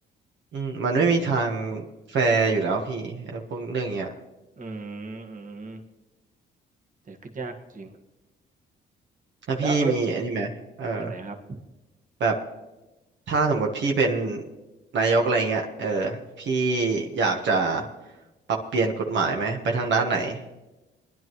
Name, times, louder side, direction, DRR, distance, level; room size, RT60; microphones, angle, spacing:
voice 1, 0.5-1.8 2.1-4.1 9.5-10.5 10.8-11.1 12.2-12.3 13.3-14.4 14.9-17.8 18.7-20.4, right 3 dB, 65° right, 1 dB, 1.4 m, -24 dB
voice 2, 4.6-5.8 7.1-7.9 9.6-9.9 11.0-11.6, right 4 dB, 40° right, 3 dB, 1.6 m, -35 dB
20.5 x 11.0 x 3.1 m, 1.0 s
cardioid pair, 90°, 20 cm